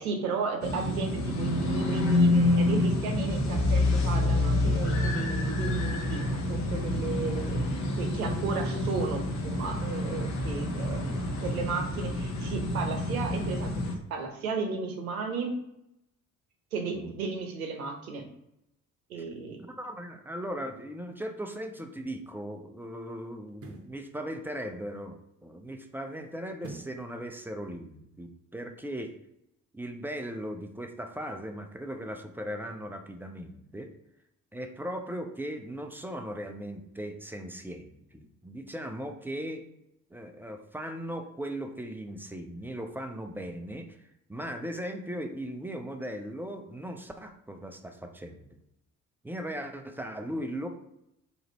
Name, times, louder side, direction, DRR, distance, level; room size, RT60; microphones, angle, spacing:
voice 1, 0.0-7.6 8.0-13.8 14.1-15.5 16.7-18.3 19.1-19.6, right 5 dB, 75° right, 3 dB, 0.8 m, -34 dB
sound 1, 0.6-13.9, left 2 dB, 40° left, 0.8 m, -27 dB
voice 2, 19.6-29.2 29.7-33.9 34.5-39.6 40.1-44.0 44.3-48.4 49.2-50.7, equal, 5° right, 4 dB, 0.4 m, -38 dB
sound 2, 21.8-21.9 23.5-24.0 26.6-27.1 27.5-27.6, right 3 dB, 35° right, 0.8 m, -44 dB
2.8 x 2.5 x 4.1 m, 0.82 s
figure-of-eight pair, 50°, 43 cm